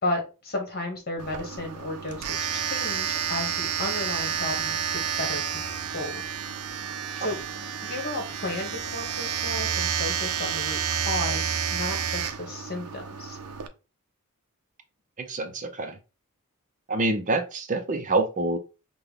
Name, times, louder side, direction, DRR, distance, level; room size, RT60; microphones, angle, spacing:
voice 1, 0.0-6.2 7.2-7.4 7.8-13.4, left 2 dB, 45° left, 3 dB, 1.4 m, -33 dB
Domestic sounds home sounds, 1.2-13.7, right 8 dB, 85° right, 0.6 m, -30 dB
voice 2, 15.2-16.0 16.9-18.6, right 2 dB, 35° right, 7 dB, 0.5 m, -26 dB
5.8 x 2.2 x 3.4 m, 0.31 s
head